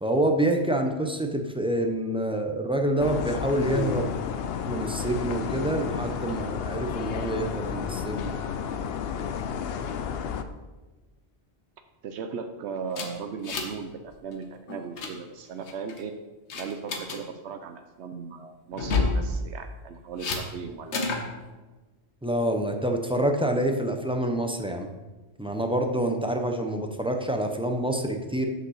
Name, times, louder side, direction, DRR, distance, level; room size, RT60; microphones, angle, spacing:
voice 1, 0.0-4.1 4.7-8.3 22.2-24.9 25.4-28.5, right 1 dB, 5° right, 3 dB, 0.5 m, -27 dB
sound 1, 3.0-10.4, left 7 dB, 65° left, 0.7 m, -31 dB
voice 2, 12.0-16.1 16.5-21.2, right 6 dB, 80° right, 7 dB, 0.9 m, -37 dB
sound 2, 12.9-13.9 14.1-14.3 14.7-15.1 15.7-16.0 16.5-17.2 18.7-19.2 20.2-20.4 20.9-21.3, left 3 dB, 85° left, 1.3 m, -28 dB
6.5 x 5.2 x 6.3 m, 1.2 s
omnidirectional pair, 1.1 m